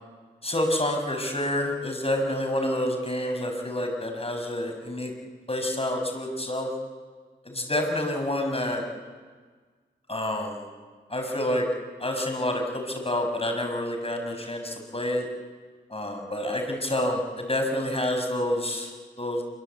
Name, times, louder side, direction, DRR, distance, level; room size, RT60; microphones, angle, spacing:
voice 1, 0.4-5.1 5.5-6.7 7.4-8.9 10.1-10.6 11.1-11.7 12.0-15.3 15.9-18.9 19.2-19.4, left 1 dB, 30° left, 3 dB, 6.2 m, -28 dB
27.0 x 23.0 x 8.3 m, 1.5 s
cardioid pair, 45°, 19 cm